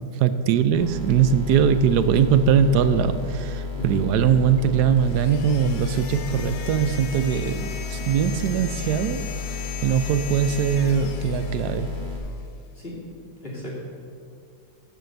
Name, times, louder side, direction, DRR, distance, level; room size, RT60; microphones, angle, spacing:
voice 1, 0.2-9.3 9.8-11.9, right 8 dB, 70° right, 11 dB, 1.1 m, -21 dB
sound 1, 0.7-12.2, left 4 dB, 30° right, 2.3 m, -32 dB
sound 2, 5.0-12.3, left 7 dB, 80° left, 1.6 m, -39 dB
voice 2, 13.4-13.8, equal, 30° left, -5 dB, 2.8 m, -35 dB
14.0 x 5.2 x 7.9 m, 2.4 s
omnidirectional pair, 2.1 m